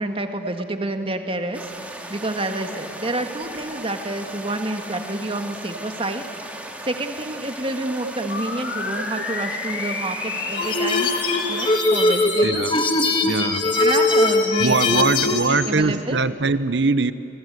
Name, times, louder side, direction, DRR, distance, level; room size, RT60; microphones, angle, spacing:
voice 1, 0.0-6.5 6.8-11.1 11.5-12.7 13.2-13.5 13.8-16.2, right 2 dB, 30° right, 6 dB, 1.7 m, -29 dB
sound 1, 1.5-11.8, right 1 dB, 10° right, 2.4 m, -37 dB
sound 2, 8.3-15.7, left 4 dB, 85° left, 5.3 m, -31 dB
sound 3, 10.5-15.5, left 2 dB, 30° left, 1.7 m, -20 dB
voice 2, 12.4-12.8 13.3-13.8 14.6-17.1, right 3 dB, 75° right, 14 dB, 0.9 m, -22 dB
29.0 x 23.5 x 8.2 m, 2.9 s
head